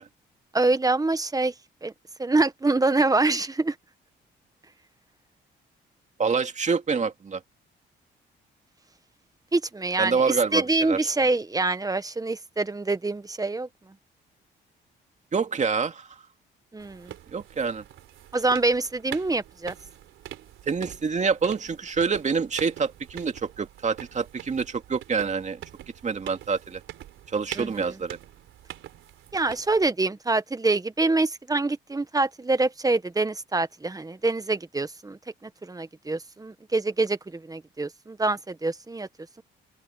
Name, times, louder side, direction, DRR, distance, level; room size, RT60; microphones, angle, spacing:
voice 1, 0.5-1.5 1.8-1.9 2.2-3.7 9.5-13.7 16.7-17.1 18.3-19.7 27.5-27.9 29.3-39.1, right 3 dB, 20° right, 1.4 m, -25 dB
voice 2, 6.2-7.4 10.0-11.0 15.3-16.1 17.3-17.8 20.7-25.6 26.0-26.8 27.3-28.2, right 5 dB, 35° right, 2.3 m, -26 dB
sound 1, 16.8-29.9, right 13 dB, 85° right, 3.8 m, -44 dB
open air
cardioid pair, 90°, 20 cm